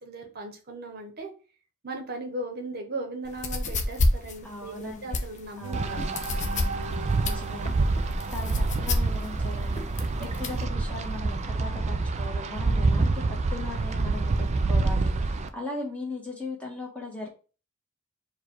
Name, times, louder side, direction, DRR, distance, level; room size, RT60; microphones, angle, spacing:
voice 1, 0.0-1.3 1.8-6.2, right 2 dB, 45° right, 3 dB, 1.0 m, -37 dB
sound 1, 3.2-10.7, left 2 dB, 35° left, 0.6 m, -29 dB
voice 2, 4.4-5.1 5.6-6.1 7.2-7.9 8.3-9.9 10.2-17.3, left 2 dB, 5° left, -3 dB, 1.4 m, -38 dB
sound 2, 5.6-9.6, right 4 dB, 90° right, 0.6 m, -39 dB
Wind, 5.7-15.5, right 3 dB, 30° right, 0.4 m, -27 dB
4.6 x 2.4 x 4.5 m, 0.36 s
head